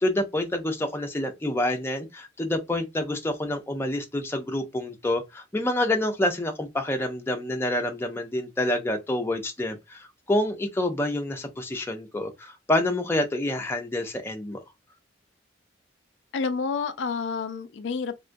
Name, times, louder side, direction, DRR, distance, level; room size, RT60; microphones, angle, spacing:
voice 1, 0.0-14.6, left 1 dB, 15° left, 0.5 m, -27 dB
voice 2, 16.3-18.2, left 5 dB, 70° left, 0.4 m, -29 dB
3.6 x 2.2 x 2.5 m
head